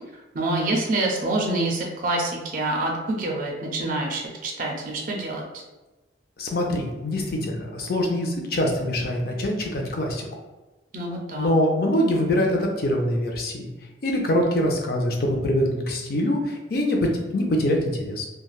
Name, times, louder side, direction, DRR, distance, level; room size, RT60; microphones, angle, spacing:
voice 1, 0.3-5.4 10.9-11.5, right 2 dB, 45° right, 0 dB, 0.4 m, -26 dB
voice 2, 6.4-10.3 11.3-13.7 14.0-18.3, left 1 dB, 55° left, 1 dB, 0.5 m, -24 dB
3.2 x 2.2 x 2.3 m, 1.1 s
head